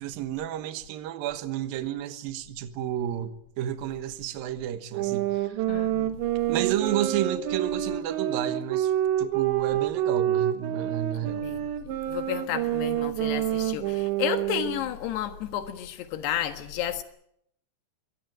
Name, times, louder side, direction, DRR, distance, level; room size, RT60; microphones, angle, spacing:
voice 1, 0.0-5.6 6.5-8.9 9.2-11.5, right 11 dB, 65° right, 2.7 m, -31 dB
sound 1, 4.9-14.9, right 12 dB, 90° right, 3.8 m, -28 dB
voice 2, 5.7-6.2 11.1-11.7 12.1-17.0, left 11 dB, 75° left, 3.5 m, -32 dB
23.0 x 17.5 x 9.1 m
omnidirectional pair, 5.1 m